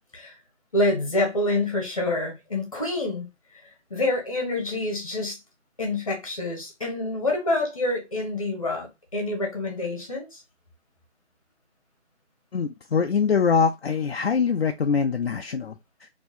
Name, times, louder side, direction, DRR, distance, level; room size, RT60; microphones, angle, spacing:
voice 1, 0.7-3.3 3.9-5.4 5.8-10.4, left 2 dB, 30° left, 1.1 m, -27 dB
voice 2, 12.5-15.7 16.0-16.1, left 6 dB, 60° left, 0.4 m, -23 dB
4.2 x 2.8 x 2.6 m
figure-of-eight pair, 170°, 34 cm